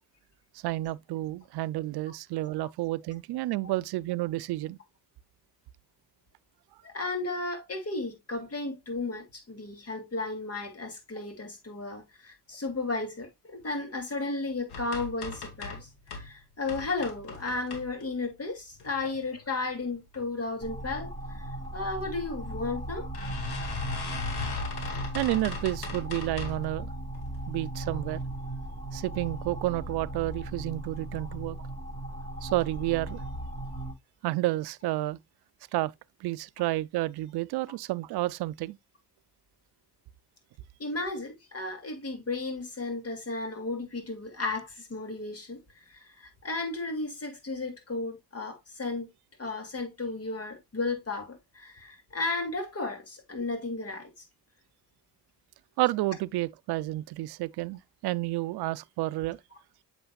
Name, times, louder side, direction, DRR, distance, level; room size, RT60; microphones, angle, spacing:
voice 1, 0.5-4.8 25.1-26.9 27.5-28.2 28.9-31.6 32.4-33.2 34.2-35.2 35.7-35.9 36.2-38.8 55.8-59.4, right 17 dB, 85° right, 0.5 m, -30 dB
voice 2, 6.8-23.1 40.8-49.1 49.4-54.2, left 3 dB, 40° left, 2.7 m, -34 dB
sound 1, 14.7-16.3 16.6-18.3 18.7-19.4 19.8-20.2 20.5-20.6 20.9-21.0 22.0-22.1 22.5-22.6 23.1-26.7 27.1-27.6 28.0-28.2 28.5-28.6, left 4 dB, 85° left, 2.2 m, -38 dB
sound 2, 20.6-33.9, right 1 dB, 20° left, 4.8 m, -37 dB
7.9 x 6.1 x 2.3 m
cardioid pair, 65°, 38 cm